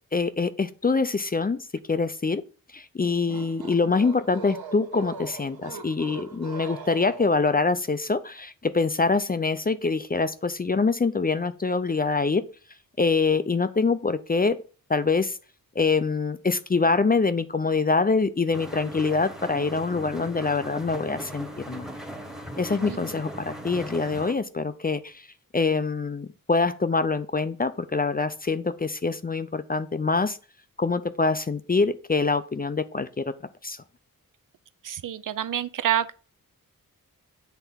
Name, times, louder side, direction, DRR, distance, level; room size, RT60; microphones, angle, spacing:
voice 1, 0.1-2.4 2.7-12.4 13.0-14.6 14.9-15.4 15.8-21.9 22.6-25.2 25.5-30.4 30.8-33.3 33.6-33.8, left 4 dB, 25° left, 0.4 m, -25 dB
sound 1, 3.1-7.6, right 5 dB, 90° right, 1.2 m, -40 dB
sound 2, 18.5-24.3, equal, ahead, 1.1 m, -38 dB
voice 2, 34.8-36.1, right 10 dB, 60° right, 0.5 m, -27 dB
8.0 x 3.4 x 5.7 m
wide cardioid pair, 90°, 36 cm